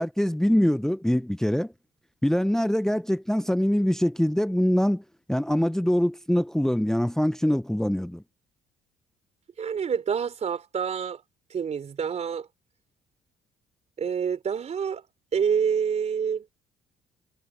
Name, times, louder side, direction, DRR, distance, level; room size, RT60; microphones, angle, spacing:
voice 1, 0.0-1.7 2.2-5.0 5.3-8.2, equal, 5° left, 0.7 m, -24 dB
voice 2, 9.6-11.2 11.5-12.5 14.0-15.0 15.3-16.5, right 7 dB, 40° right, 4.0 m, -27 dB
cardioid pair, 110°, 17 cm